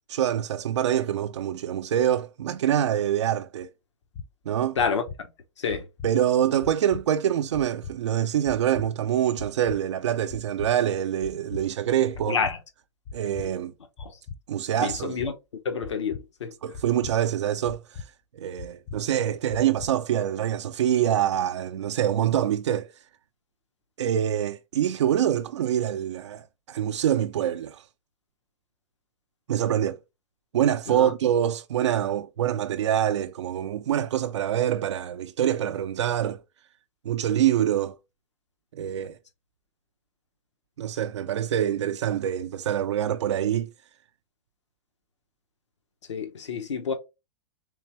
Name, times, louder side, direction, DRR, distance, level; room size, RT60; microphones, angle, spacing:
voice 1, 0.1-3.7 4.5-4.8 6.0-12.4 13.1-13.7 14.5-15.2 16.6-18.0 18.3-22.9 24.0-27.8 29.5-30.0 30.5-36.4 37.0-38.0 38.7-39.2 40.8-43.7, right 10 dB, 80° right, 0.4 m, -25 dB
sound 1, 4.1-4.3 4.8-5.2 5.7-6.1 6.6-7.0 7.5-7.9 8.5-8.9 9.4-9.8 10.3-10.7 11.2-11.6 12.1-12.5 13.1-13.5 14.0-14.4 14.9-15.3 15.8-16.2 16.7-17.1 17.7-18.1 18.6-19.0 19.5-19.9, left 5 dB, 45° left, 0.6 m, -39 dB
voice 2, 12.3-12.6 13.4-13.5 14.0-14.1 14.8-15.3 15.6-16.5 30.9-31.1 46.1-46.9, left 6 dB, 85° left, 0.8 m, -28 dB
3.4 x 3.3 x 2.9 m
hypercardioid pair, 115°, 15 cm